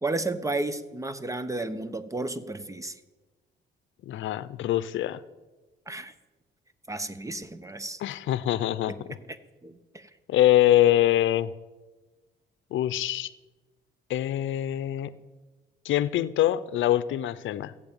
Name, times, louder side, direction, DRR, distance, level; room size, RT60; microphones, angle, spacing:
voice 1, 0.0-2.9 5.9-6.1 6.9-8.0 8.9-9.0 9.6-10.1, right 2 dB, 15° right, 13 dB, 1.1 m, -32 dB
voice 2, 4.0-5.2 8.0-9.2 10.3-11.5 12.7-13.3 14.1-15.1 15.8-17.7, left 13 dB, 75° left, 15 dB, 0.7 m, -24 dB
14.5 x 8.6 x 8.8 m, 1.2 s
cardioid pair, 90°, 20 cm